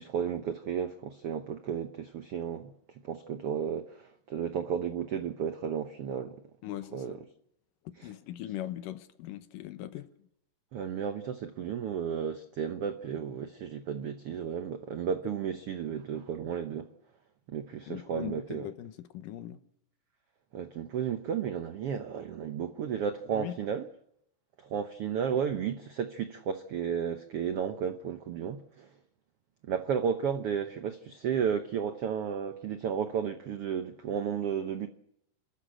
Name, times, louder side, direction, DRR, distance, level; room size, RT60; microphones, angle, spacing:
voice 1, 0.0-2.7 3.0-6.4 6.9-7.2 10.7-16.9 17.5-18.7 20.5-23.9 24.6-28.9 29.6-34.9, right 7 dB, 85° right, 1.3 m, -33 dB
voice 2, 6.6-7.2 8.0-10.3 17.9-19.6 23.3-23.5, left 13 dB, 75° left, 2.5 m, -40 dB
27.5 x 13.0 x 7.7 m
omnidirectional pair, 4.0 m